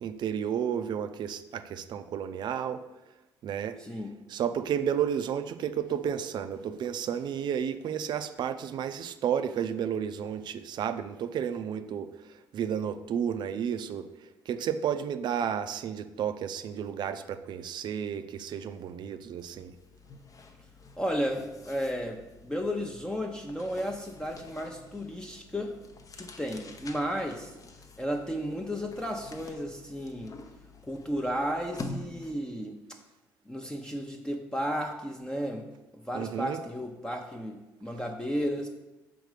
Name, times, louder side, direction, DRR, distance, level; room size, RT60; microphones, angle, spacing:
voice 1, 0.0-2.8 3.4-3.8 4.3-12.1 12.5-19.7 36.1-36.6, right 8 dB, 60° right, 10 dB, 0.5 m, -32 dB
voice 2, 3.8-4.1 21.0-25.8 26.2-27.6 28.0-30.3 30.8-33.0 33.5-35.7 36.0-38.7, equal, 10° left, 2 dB, 0.7 m, -33 dB
sound 1, 18.6-18.8 19.1-32.5, left 3 dB, 45° left, 0.7 m, -47 dB
5.1 x 3.8 x 4.8 m, 1.0 s
hypercardioid pair, 60°, 9 cm